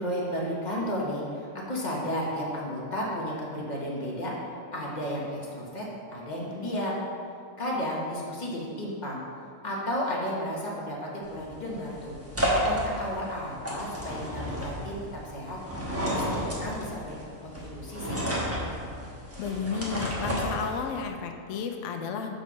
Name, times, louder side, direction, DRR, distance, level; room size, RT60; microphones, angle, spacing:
voice 1, 0.0-4.3 4.7-5.8 6.1-7.0 7.6-9.2 9.6-12.1 12.4-15.6 16.0-18.2, equal, 35° left, -4 dB, 1.2 m, -33 dB
sound 1, 11.2-21.1, equal, 10° right, 1.0 m, -32 dB
voice 2, 19.4-22.4, left 5 dB, 75° left, 5 dB, 0.9 m, -32 dB
6.3 x 4.0 x 6.2 m, 2.4 s
omnidirectional pair, 1.4 m